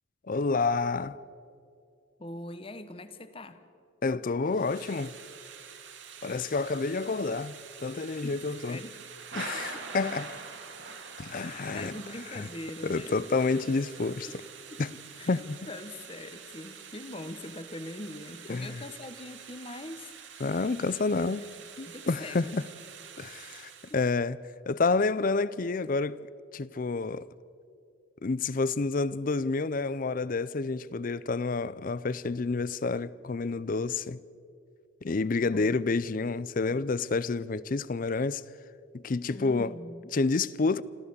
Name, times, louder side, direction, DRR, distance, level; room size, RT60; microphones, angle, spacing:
voice 1, 0.3-1.2 4.0-5.1 6.2-7.6 7.8-8.8 9.3-10.4 11.2-11.9 12.3-12.5 12.8-14.3 14.8-14.9 15.3-15.6 18.5-18.8 20.4-21.5 21.8-22.6 23.2-24.4 24.7-26.2 26.5-27.3 28.2-34.2 35.0-38.4 38.9-39.7 40.1-40.8, left 3 dB, 45° left, 0.5 m, -29 dB
voice 2, 2.2-3.6 6.2-6.5 8.2-8.4 8.7-8.9 9.7-9.8 11.3-13.2 14.3-14.4 14.7-20.1 21.9-22.6 23.9-24.0 35.5-36.1 39.3-40.1, left 1 dB, 30° left, 1.0 m, -43 dB
Thunder / Rain, 4.5-24.0, right 6 dB, 65° right, 2.3 m, -46 dB
27.0 x 14.5 x 6.8 m
head